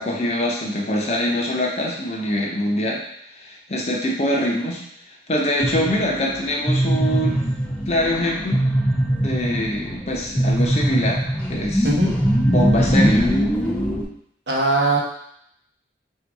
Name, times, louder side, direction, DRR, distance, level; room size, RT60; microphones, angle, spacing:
voice 1, 0.0-3.0 3.3-4.8 5.3-7.5 7.9-8.6 9.1-11.2 11.5-11.9 12.5-13.4, equal, 35° left, -2 dB, 0.7 m, -24 dB
sound 1, 5.6-14.0, equal, 5° left, 0.4 m, -21 dB
voice 2, 11.8-12.2 14.5-15.0, right 2 dB, 75° right, -1 dB, 1.0 m, -19 dB
3.5 x 2.7 x 4.6 m, 0.70 s
head